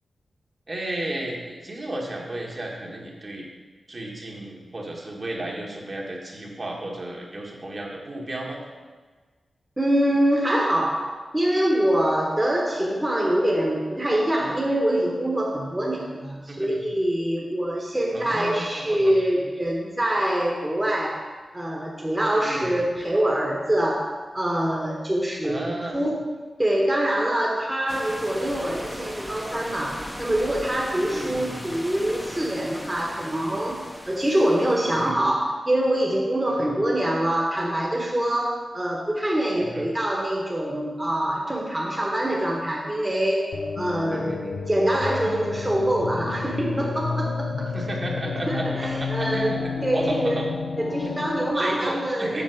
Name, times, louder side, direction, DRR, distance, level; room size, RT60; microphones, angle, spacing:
voice 1, 0.7-3.5 3.9-8.6 16.5-16.8 18.1-19.1 22.4-22.8 25.4-26.1 31.0-31.6 35.0-35.1 36.5-36.7 39.6-39.9 44.1-44.7 47.7-50.5 51.0-51.1 51.5-52.4, right 1 dB, 40° right, -2 dB, 1.4 m, -33 dB
voice 2, 9.8-21.3 21.5-26.2 26.6-33.8 34.1-43.5 43.8-44.4 44.7-47.7 48.5-50.4 50.8-52.4, right 1 dB, 15° right, -2 dB, 1.1 m, -24 dB
sound 1, 27.9-35.1, equal, 5° left, 0.8 m, -38 dB
sound 2, 43.5-51.5, left 5 dB, 90° left, 0.5 m, -31 dB
7.4 x 4.2 x 6.3 m, 1.4 s
wide cardioid pair, 90°, 0 cm